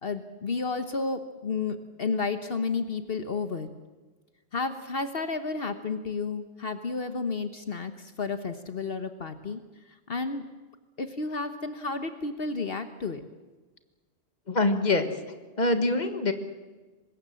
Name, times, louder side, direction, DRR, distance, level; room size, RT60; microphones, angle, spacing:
voice 1, 0.0-3.7 4.5-9.6 9.9-10.5 11.0-13.2, left 4 dB, 60° left, 9 dB, 1.4 m, -32 dB
voice 2, 14.5-15.1 15.6-16.3, left 2 dB, 40° left, 8 dB, 1.9 m, -24 dB
24.5 x 20.5 x 7.6 m, 1.3 s
omnidirectional pair, 1.1 m